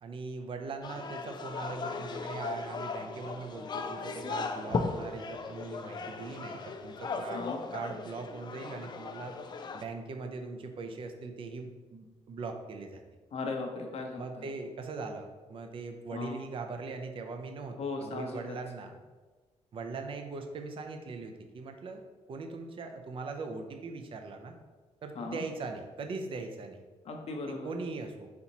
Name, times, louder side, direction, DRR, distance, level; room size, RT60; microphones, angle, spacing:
voice 1, 0.0-7.5 7.7-9.3 9.7-13.0 14.2-19.0 19.7-22.0 22.3-24.6 25.0-26.8 27.5-28.3, right 4 dB, 50° right, 5 dB, 0.5 m, -40 dB
sound 1, 0.8-9.8, left 4 dB, 40° left, 0.4 m, -37 dB
voice 2, 13.3-14.5 16.1-16.4 17.8-18.6 25.1-25.4 27.0-27.7, left 3 dB, 60° left, 3 dB, 0.8 m, -37 dB
4.1 x 2.9 x 4.1 m, 1.3 s
cardioid pair, 95°, 12 cm